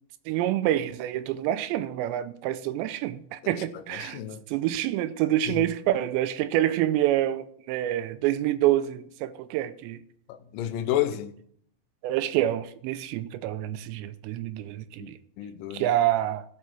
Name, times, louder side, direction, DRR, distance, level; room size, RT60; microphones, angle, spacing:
voice 1, 0.3-4.2 4.5-10.0 12.0-15.2 15.7-16.4, right 13 dB, 90° right, 2.8 m, -27 dB
voice 2, 3.4-4.4 5.5-5.7 10.3-11.3 15.0-15.9, left 12 dB, 85° left, 1.9 m, -32 dB
14.5 x 5.7 x 4.6 m
omnidirectional pair, 5.1 m